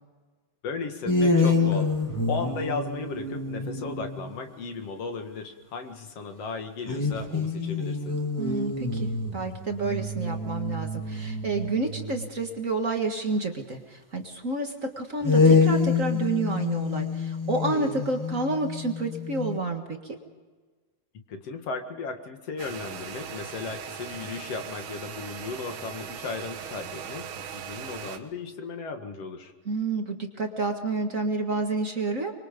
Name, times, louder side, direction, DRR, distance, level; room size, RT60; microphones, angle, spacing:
voice 1, 0.6-1.9 2.3-8.2 21.3-29.5, left 4 dB, 55° left, 6 dB, 2.7 m, -35 dB
sound 1, 1.1-4.4 6.9-12.3 15.2-19.6, left 4 dB, 5° left, 2.0 m, -26 dB
voice 2, 8.4-20.2 29.6-32.3, right 3 dB, 35° right, 4 dB, 1.5 m, -29 dB
sound 2, 22.6-28.2, right 8 dB, 85° right, 2.8 m, -39 dB
25.5 x 23.0 x 5.3 m, 1.4 s
omnidirectional pair, 3.4 m